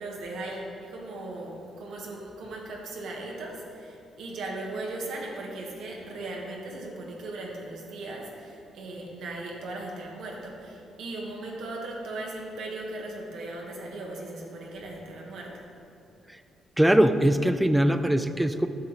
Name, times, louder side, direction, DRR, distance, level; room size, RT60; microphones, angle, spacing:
voice 1, 0.0-15.6, right 2 dB, 75° right, -1 dB, 1.3 m, -38 dB
voice 2, 16.8-18.7, right 1 dB, 5° right, 10 dB, 0.4 m, -21 dB
10.0 x 6.1 x 4.0 m, 2.6 s
cardioid pair, 90°, 0 cm